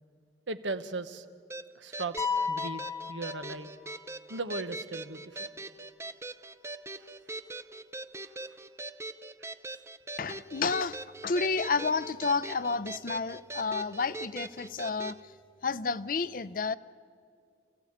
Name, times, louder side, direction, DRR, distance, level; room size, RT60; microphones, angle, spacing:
voice 1, 0.5-1.2 1.7-3.7 4.3-5.5 7.0-7.1 8.2-8.6 9.4-9.8, right 3 dB, 90° right, 10 dB, 1.1 m, -38 dB
sound 1, 1.5-15.2, right 2 dB, 15° right, 0.5 m, -41 dB
sound 2, 2.2-4.1, left 5 dB, 15° left, 1.1 m, -33 dB
voice 2, 10.2-15.2 15.6-16.8, left 4 dB, 50° left, 16 dB, 0.5 m, -30 dB
28.5 x 15.0 x 8.6 m, 2.2 s
head